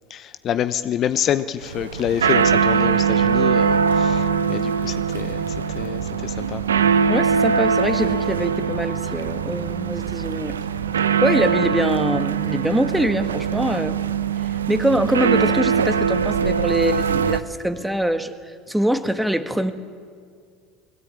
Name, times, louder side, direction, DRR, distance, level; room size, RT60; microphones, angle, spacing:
voice 1, 0.1-6.6, left 10 dB, 45° left, 12 dB, 0.7 m, -27 dB
sound 1, 1.6-17.4, right 6 dB, 85° right, 0.7 m, -22 dB
voice 2, 7.1-10.6 11.2-14.0 14.4-19.7, right 1 dB, 5° right, 9 dB, 1.5 m, -24 dB
21.0 x 16.5 x 9.0 m, 2.1 s
hypercardioid pair, 75°, 0 cm